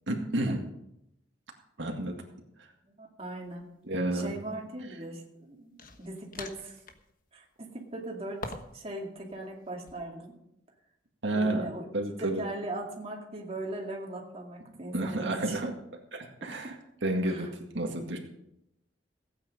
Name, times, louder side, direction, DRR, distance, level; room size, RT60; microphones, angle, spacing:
voice 1, 0.1-0.6 1.8-2.2 2.6-2.7 3.8-4.3 11.2-11.7 11.9-12.5 14.9-15.7 16.1-16.8 17.0-18.2, right 1 dB, 80° right, 2 dB, 1.9 m, -30 dB
voice 2, 2.9-3.7 4.1-6.8 7.3-8.4 8.7-10.3 11.3-11.8 12.2-15.6 16.4-16.7 17.2-17.5, right 2 dB, 35° right, -1 dB, 2.3 m, -39 dB
sound 1, 3.4-3.6 5.8-7.1 8.4-8.9 9.2-10.0, left 3 dB, 50° left, 1.2 m, -43 dB
16.0 x 8.8 x 5.3 m, 0.81 s
head